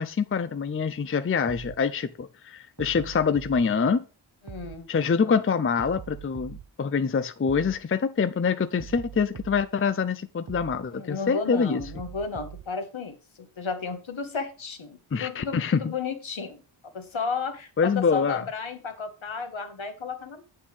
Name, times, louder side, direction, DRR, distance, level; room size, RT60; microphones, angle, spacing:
voice 1, 0.0-4.1 4.9-11.8 15.1-15.9 17.8-18.5, left 5 dB, 25° left, 0.5 m, -25 dB
sound 1, 1.5-1.8 2.8-3.6 4.5-4.8 5.8-6.7 7.5-7.8 8.8-9.7 10.5-10.8 11.8-12.7, right 9 dB, 45° right, 0.7 m, -42 dB
voice 2, 4.4-4.9 10.9-16.6 16.9-20.4, left 5 dB, 70° left, 1.5 m, -33 dB
8.5 x 7.5 x 3.3 m
wide cardioid pair, 65°, 49 cm